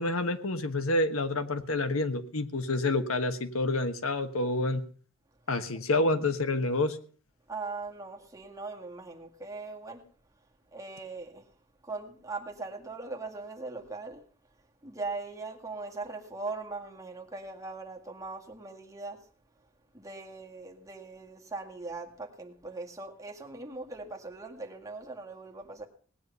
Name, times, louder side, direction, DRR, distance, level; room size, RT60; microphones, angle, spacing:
voice 1, 0.0-4.8 5.5-7.0, left 2 dB, 85° left, 1.4 m, -28 dB
voice 2, 7.5-10.0 10.7-11.5 11.8-14.2 14.8-19.3 19.9-25.9, right 3 dB, 15° right, 2.0 m, -40 dB
18.5 x 9.6 x 5.5 m
head